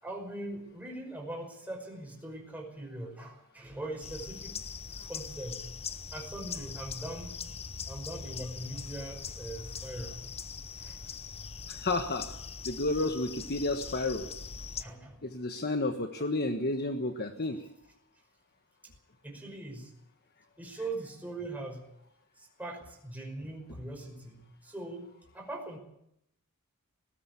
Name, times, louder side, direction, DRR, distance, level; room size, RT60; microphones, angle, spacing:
voice 1, 0.0-4.5 5.1-5.7 6.1-7.4 7.9-10.2 10.7-11.0 14.8-15.3 19.2-19.9 20.6-21.9 22.4-25.1 25.3-25.8, right 2 dB, 5° right, 1 dB, 5.4 m, -41 dB
sound 1, 4.0-14.8, left 6 dB, 30° left, 0.8 m, -41 dB
voice 2, 11.7-12.3 12.6-14.3 15.2-17.7, left 2 dB, 45° left, 7 dB, 1.3 m, -31 dB
19.0 x 17.5 x 8.4 m, 0.76 s
head